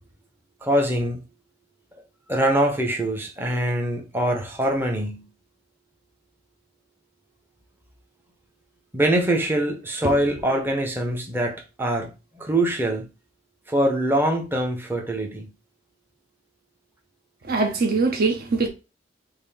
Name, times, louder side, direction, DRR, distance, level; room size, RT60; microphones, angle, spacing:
voice 1, 0.6-1.2 2.3-5.3 8.9-13.1 13.7-15.5, right 1 dB, 10° right, 0.6 m, -23 dB
voice 2, 17.5-18.7, right 3 dB, 55° right, 0.6 m, -22 dB
3.5 x 2.5 x 3.4 m
head